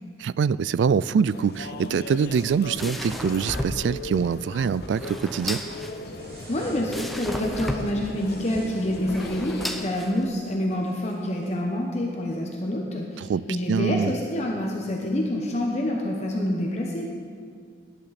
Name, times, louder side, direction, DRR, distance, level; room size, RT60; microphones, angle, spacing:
voice 1, 0.2-5.6 13.2-14.1, right 6 dB, 80° right, 19 dB, 0.3 m, -24 dB
sound 1, 1.3-9.9, left 2 dB, 60° left, 0.8 m, -38 dB
sound 2, 2.4-10.6, equal, ahead, 0.6 m, -35 dB
sound 3, 6.0-7.3 7.9-9.8 10.8-11.5, equal, 55° right, 3.4 m, -46 dB
voice 2, 6.5-17.2, left 1 dB, 35° left, 0 dB, 1.1 m, -27 dB
17.5 x 10.5 x 4.2 m, 2.1 s
head